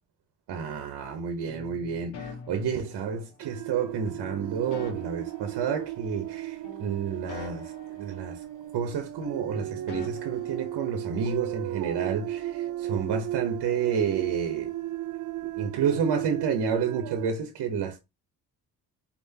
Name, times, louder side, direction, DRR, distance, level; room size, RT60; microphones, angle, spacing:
voice 1, 0.5-8.4 8.7-14.7 15.6-18.0, right 7 dB, 75° right, 1.0 m, -30 dB
sound 1, 1.5-3.5 4.1-6.4 6.6-9.0 9.2-11.3, left 5 dB, 90° left, 1.6 m, -46 dB
sound 2, 3.4-17.3, right 14 dB, 55° right, 0.4 m, -35 dB
4.4 x 3.5 x 2.8 m
cardioid pair, 75°, 40 cm